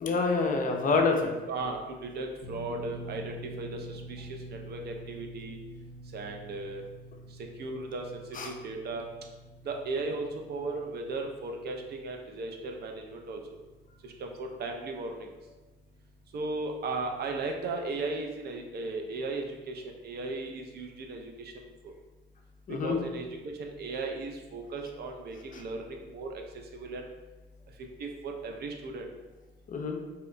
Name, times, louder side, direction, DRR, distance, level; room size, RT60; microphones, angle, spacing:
voice 1, 0.0-1.2 8.4-8.5 22.7-23.0 25.5-25.6 29.7-30.0, left 4 dB, 40° left, 3 dB, 0.4 m, -27 dB
voice 2, 1.5-5.6 6.1-6.8 7.6-9.1 9.6-13.4 14.0-15.3 16.3-21.5 22.7-26.4 26.7-27.0 28.0-29.1, right 3 dB, 55° right, 3 dB, 0.4 m, -36 dB
sound 1, 2.4-14.6 14.9-15.1 16.8-16.9, right 2 dB, 10° right, 0.7 m, -48 dB
2.7 x 2.1 x 2.5 m, 1.2 s
cardioid pair, 90°, 20 cm